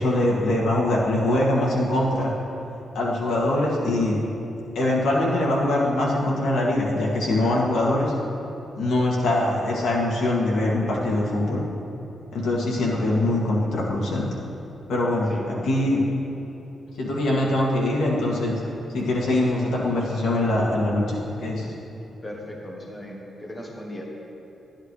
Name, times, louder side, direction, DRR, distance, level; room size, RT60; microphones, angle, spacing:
voice 1, 0.0-2.3 2.9-4.2 4.8-8.1 8.8-11.6 12.3-14.3 14.9-15.3 15.6-16.0 17.0-18.6 18.9-21.7, left 1 dB, 85° left, -3 dB, 2.0 m, -23 dB
voice 2, 22.2-24.0, equal, 20° left, -1 dB, 1.1 m, -37 dB
12.5 x 10.5 x 3.3 m, 3.0 s
wide cardioid pair, 160°, 0 cm